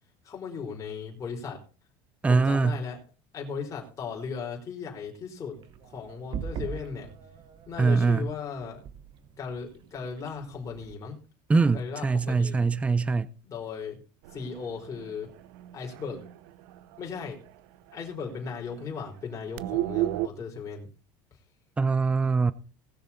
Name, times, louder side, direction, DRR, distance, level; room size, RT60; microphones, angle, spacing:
voice 1, 0.2-1.6 2.2-3.0 3.3-5.6 5.8-7.1 7.7-8.8 9.4-11.2 11.7-12.7 13.4-14.0 14.3-15.3 15.7-16.2 17.0-17.4 17.9-20.9, left 5 dB, 25° left, 4.3 m, -37 dB
voice 2, 2.2-2.8 7.8-8.3 11.5-13.3 21.8-22.5, right 4 dB, 10° right, 0.5 m, -23 dB
sound 1, 5.5-10.9, right 7 dB, 40° right, 1.2 m, -41 dB
sound 2, 14.2-17.6 17.9-18.0 18.3-18.5 18.7-20.3, right 14 dB, 75° right, 0.8 m, -34 dB
19.5 x 6.7 x 4.3 m
cardioid pair, 140°, 12 cm